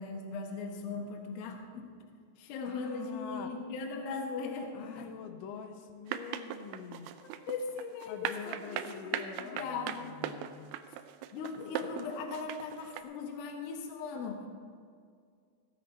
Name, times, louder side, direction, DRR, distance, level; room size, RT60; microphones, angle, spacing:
voice 1, 0.0-1.9 2.4-5.1 7.2-10.2 11.3-14.5, left 4 dB, 65° left, 2 dB, 2.8 m, -39 dB
voice 2, 2.6-3.5 4.7-7.1 8.1-10.7, left 6 dB, 85° left, 5 dB, 3.0 m, -45 dB
sound 1, 6.1-13.0, right 12 dB, 90° right, 2.2 m, -38 dB
15.0 x 10.5 x 4.1 m, 2.1 s
omnidirectional pair, 5.1 m